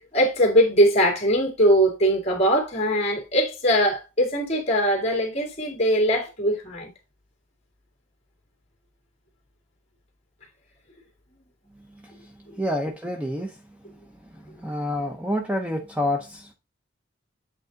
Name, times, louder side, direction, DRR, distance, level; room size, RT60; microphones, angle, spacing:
voice 1, 0.1-6.9 12.5-12.6, equal, 35° left, 2.3 m, -21 dB
voice 2, 12.0-13.5 14.3-16.5, left 1 dB, 5° right, 0.7 m, -28 dB
8.2 x 3.6 x 3.9 m
head